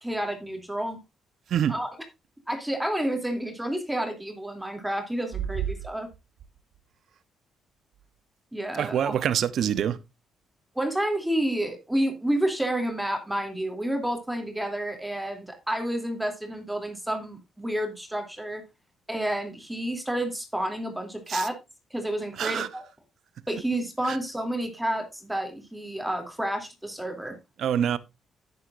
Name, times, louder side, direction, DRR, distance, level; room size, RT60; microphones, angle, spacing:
voice 1, 0.0-1.0 1.7-1.9 2.5-6.1 8.5-9.1 10.7-18.6 19.1-21.6 21.9-22.8 23.5-27.4, right 1 dB, 5° right, 2.9 m, -30 dB
voice 2, 8.7-10.0 21.3-21.5 22.4-22.7 24.0-24.2 27.6-28.0, right 9 dB, 70° right, 0.8 m, -25 dB
11.5 x 9.5 x 2.6 m
cardioid pair, 90°, 0 cm